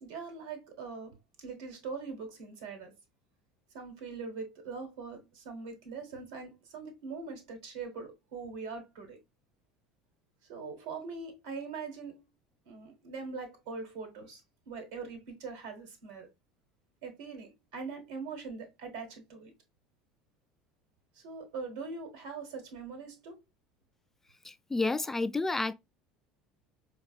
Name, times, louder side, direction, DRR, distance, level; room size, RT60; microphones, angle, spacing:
voice 1, 0.0-2.9 3.7-9.2 10.5-12.2 12.6-14.4 14.7-16.3 17.0-19.5 21.1-23.4, right 4 dB, 75° right, 1.2 m, -42 dB
voice 2, 24.5-25.7, left 3 dB, 15° left, 0.3 m, -30 dB
4.6 x 2.3 x 2.3 m
hypercardioid pair, 75°, 3 cm